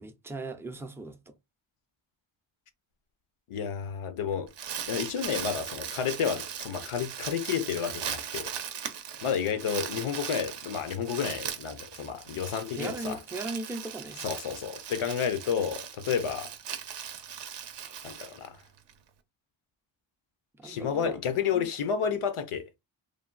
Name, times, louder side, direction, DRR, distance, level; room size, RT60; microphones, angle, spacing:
voice 1, 0.0-1.3 12.7-14.2 20.6-21.2 21.5-21.7 22.0-22.1, right 2 dB, 5° right, 0.3 m, -38 dB
voice 2, 3.5-4.5 4.9-8.5 9.2-13.2 14.2-16.5 18.0-18.6 20.6-22.7, left 7 dB, 80° left, 0.7 m, -31 dB
Crumpling crinkling, 4.3-18.9, right 8 dB, 60° right, 0.5 m, -39 dB
3.2 x 2.2 x 2.4 m
wide cardioid pair, 125°, 50 cm